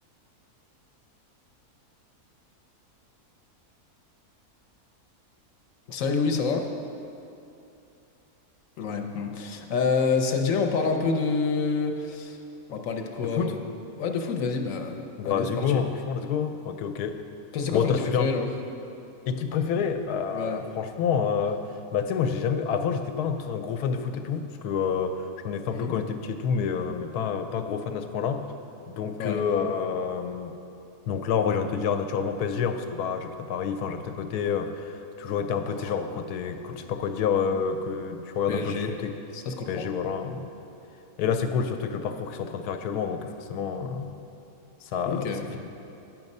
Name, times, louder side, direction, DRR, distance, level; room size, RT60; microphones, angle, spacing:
voice 1, 5.9-6.7 8.8-12.4 12.7-13.6 14.0-15.8 17.5-18.5 20.3-20.6 25.7-25.9 29.2-29.4 35.7-36.0 38.5-38.9 39.3-39.8 45.1-45.5, left 4 dB, 65° left, 3 dB, 1.0 m, -28 dB
voice 2, 13.2-13.5 15.2-17.2 17.7-18.4 19.3-21.6 21.9-28.5 28.9-30.5 31.1-39.1 39.7-40.5 41.2-44.2 44.8-45.7, left 6 dB, 85° left, 7 dB, 1.1 m, -28 dB
9.3 x 6.0 x 5.3 m, 2.8 s
omnidirectional pair, 1.6 m